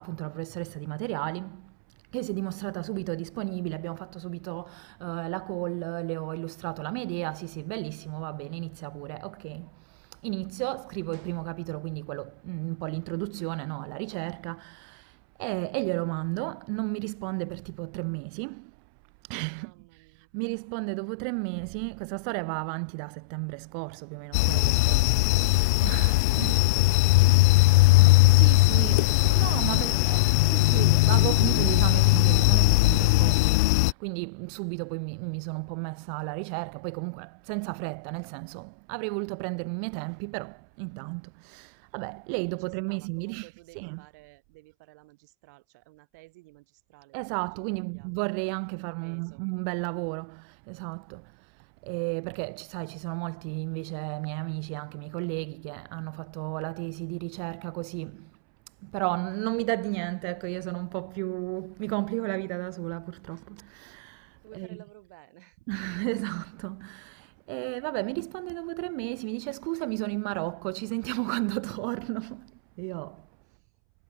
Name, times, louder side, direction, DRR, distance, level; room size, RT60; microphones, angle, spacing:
voice 1, 0.0-1.8 2.1-18.8 19.2-26.5 28.3-44.0 47.1-58.4 58.8-64.7 65.7-73.3, right 40 dB or more, 55° right, 1.1 m, -34 dB
voice 2, 19.5-20.3 26.2-30.4 42.6-48.1 48.7-49.4 64.4-65.7 73.5-73.7, right 22 dB, 75° right, 7.8 m, -54 dB
sound 1, 24.3-33.9, left 23 dB, 75° left, 0.4 m, -20 dB
cardioid pair, 175°, 9 cm